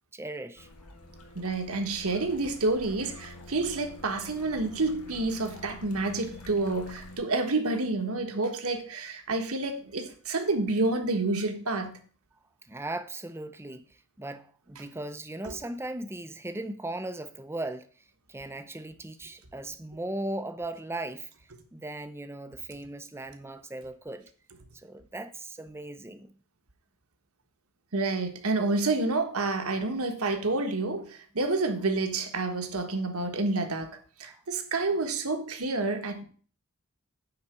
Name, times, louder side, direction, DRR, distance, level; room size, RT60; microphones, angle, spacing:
voice 1, 0.1-0.7 12.6-17.9 18.3-21.3 21.7-24.3 24.7-26.3 34.3-34.4, right 1 dB, 10° right, 0.6 m, -38 dB
sound 1, 0.6-7.2, left 2 dB, 85° left, 1.7 m, -47 dB
voice 2, 1.3-12.0 15.4-15.5 27.9-36.2, right 3 dB, 75° right, 1.4 m, -29 dB
9.6 x 4.1 x 6.8 m
head